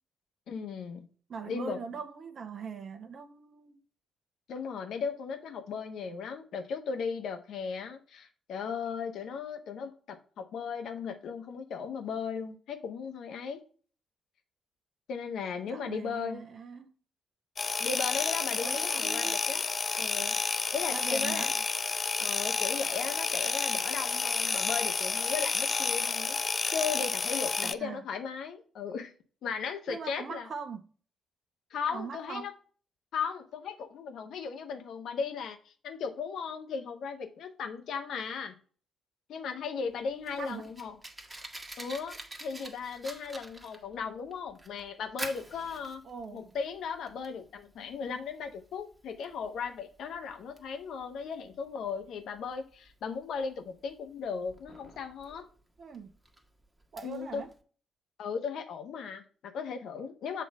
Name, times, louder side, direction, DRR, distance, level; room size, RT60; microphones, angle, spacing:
voice 1, 0.5-1.1 1.5-1.8 4.5-13.6 15.1-16.4 17.8-19.6 19.9-20.4 20.7-21.5 22.2-26.4 26.7-29.1 29.4-30.5 31.7-32.5 33.1-38.5 39.3-41.0 41.8-46.0 46.3-55.5 57.0-57.4 58.2-60.4, left 6 dB, 65° left, 1.1 m, -36 dB
voice 2, 1.3-3.8 15.7-16.9 18.6-19.4 20.9-21.5 27.6-28.0 29.9-30.8 31.9-32.5 40.4-40.7 46.0-46.4 55.8-56.1 56.9-57.5, right 5 dB, 55° right, 0.9 m, -41 dB
sound 1, 17.6-27.7, left 4 dB, 40° left, 0.5 m, -30 dB
Fire, 39.9-57.6, right 1 dB, 20° right, 1.5 m, -48 dB
7.6 x 3.2 x 5.3 m
hypercardioid pair, 40°, 0 cm